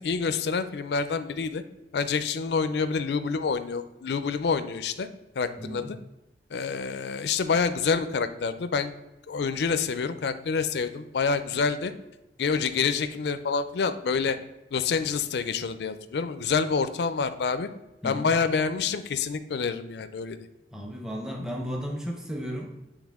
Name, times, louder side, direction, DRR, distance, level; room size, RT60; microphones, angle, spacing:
voice 1, 0.0-1.6 1.9-5.1 5.4-6.0 6.5-8.9 9.3-11.9 12.4-14.4 14.7-17.7 18.0-20.4, left 5 dB, 70° left, 11 dB, 0.4 m, -27 dB
voice 2, 5.6-5.9 18.0-18.3 20.7-22.8, equal, 5° right, 0 dB, 0.7 m, -34 dB
8.3 x 3.2 x 3.5 m, 0.98 s
head